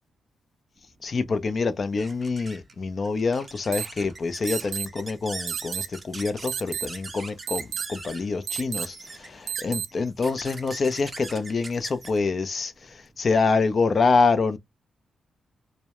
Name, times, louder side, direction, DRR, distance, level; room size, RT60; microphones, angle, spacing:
sound 1, 0.8-13.7, right 3 dB, 30° right, 0.5 m, -42 dB
voice 1, 1.0-14.6, left 4 dB, 45° left, 0.4 m, -26 dB
sound 2, 3.7-3.9 4.5-4.9 5.5-5.9 6.5-6.9 7.5-7.9 8.5-8.9 9.5-9.9, right 9 dB, 90° right, 0.4 m, -30 dB
2.2 x 2.0 x 2.8 m
cardioid pair, 90°, 0 cm